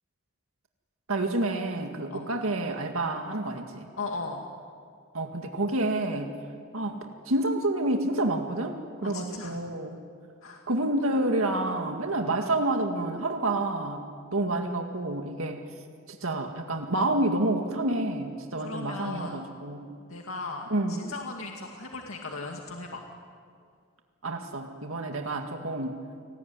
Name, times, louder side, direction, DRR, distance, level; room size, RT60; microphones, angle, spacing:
voice 1, 1.1-3.9 5.1-6.3 6.7-10.0 10.7-14.0 14.3-15.6 16.2-20.0 20.7-21.1 24.2-26.0, right 2 dB, 85° right, 3 dB, 2.1 m, -29 dB
voice 2, 4.0-4.5 9.0-9.6 10.4-10.6 18.6-19.4 20.1-23.0 25.0-25.1, left 3 dB, 85° left, 1 dB, 2.3 m, -37 dB
29.5 x 20.0 x 9.8 m, 2.2 s
head